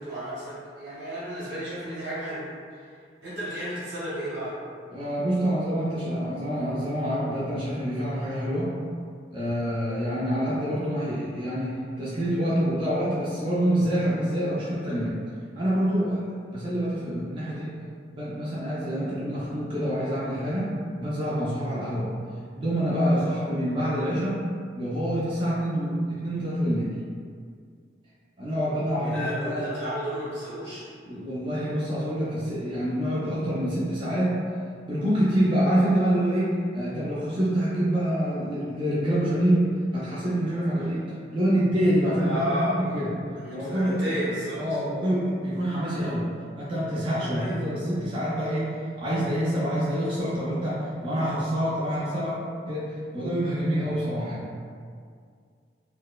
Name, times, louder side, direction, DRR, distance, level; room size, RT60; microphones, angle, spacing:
voice 1, 0.0-2.5 3.2-4.5 29.0-30.8 42.2-42.7 43.3-44.6 47.3-47.8, equal, 85° right, -9 dB, 1.2 m, -32 dB
voice 2, 4.9-8.8 9.3-15.2 15.6-16.2 16.5-17.8 18.1-22.1 22.5-24.4 24.8-26.9 28.4-29.7 31.0-34.4 34.8-42.5 42.8-43.1 43.5-44.2 44.6-46.3 46.6-54.5, equal, 30° right, -9 dB, 0.5 m, -26 dB
4.2 x 2.1 x 2.2 m, 2.1 s
head